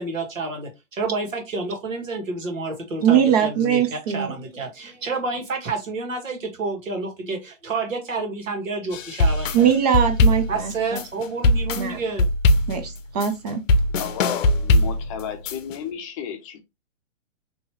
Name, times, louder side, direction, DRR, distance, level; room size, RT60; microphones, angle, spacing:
voice 1, 0.0-9.7 10.5-12.3, right 3 dB, 85° right, 1.6 m, -29 dB
voice 2, 3.0-4.3 9.5-11.0 11.8-12.0 12.7-13.6, right 8 dB, 35° right, 0.4 m, -21 dB
sound 1, 8.9-15.8, left 2 dB, 80° left, 0.6 m, -21 dB
voice 3, 14.0-16.6, left 8 dB, 25° left, 0.6 m, -32 dB
3.0 x 2.9 x 2.9 m
hypercardioid pair, 135°, 38 cm